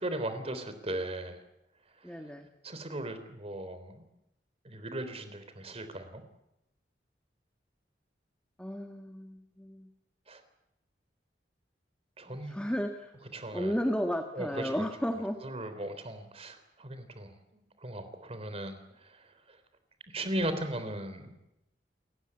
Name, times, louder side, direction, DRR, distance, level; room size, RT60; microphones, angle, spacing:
voice 1, 0.0-1.4 2.0-2.1 2.6-4.1 4.6-6.2 10.3-10.4 12.2-12.7 13.3-13.7 14.3-14.9 15.4-19.6 20.1-21.3, right 1 dB, 35° right, 9 dB, 3.5 m, -38 dB
voice 2, 2.0-2.5 8.6-9.9 12.3-13.1 13.5-15.4, equal, 5° left, 5 dB, 1.4 m, -33 dB
29.0 x 15.0 x 9.8 m, 0.88 s
head